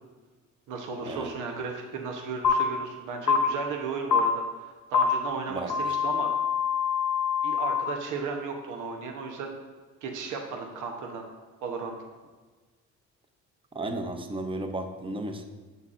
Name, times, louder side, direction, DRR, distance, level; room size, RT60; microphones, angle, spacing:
voice 1, 0.7-6.3 7.4-9.5 10.0-11.2 11.6-11.9, right 4 dB, 85° right, 3 dB, 0.9 m, -35 dB
sound 1, 2.4-2.5 3.3-3.4 4.1-4.2 4.9-5.0 5.7-7.8, left 8 dB, 80° left, 1.1 m, -25 dB
voice 2, 13.7-15.4, right 2 dB, 15° right, 6 dB, 0.8 m, -33 dB
8.0 x 7.2 x 2.5 m, 1.4 s
cardioid pair, 90°, 30 cm